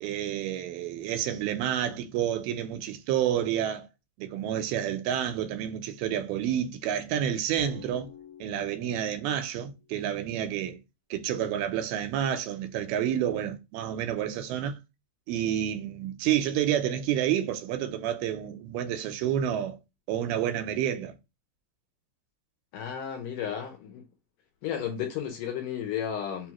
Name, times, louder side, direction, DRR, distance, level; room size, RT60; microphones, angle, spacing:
voice 1, 0.0-3.9 4.2-8.1 8.4-10.8 11.1-14.7 15.3-19.8 20.1-21.1, right 10 dB, 85° right, 2.5 m, -29 dB
Drum, 7.6-9.3, left 7 dB, 15° left, 0.5 m, -45 dB
voice 2, 22.7-24.0 24.6-26.5, left 9 dB, 75° left, 2.1 m, -33 dB
5.7 x 2.5 x 2.9 m
omnidirectional pair, 4.3 m